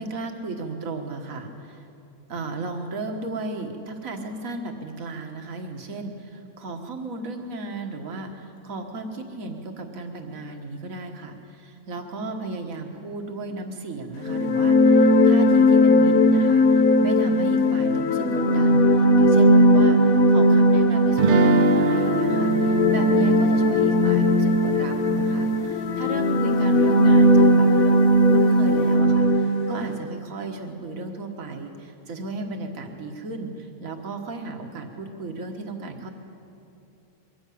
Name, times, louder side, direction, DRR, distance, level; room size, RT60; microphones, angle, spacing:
voice 1, 0.0-1.8 2.3-36.1, right 3 dB, 75° right, 4 dB, 2.0 m, -34 dB
sound 1, 14.2-29.9, left 1 dB, 90° left, 1.5 m, -18 dB
sound 2, 21.2-26.1, right 3 dB, 50° right, 0.6 m, -27 dB
22.5 x 15.5 x 8.5 m, 2.8 s
omnidirectional pair, 1.4 m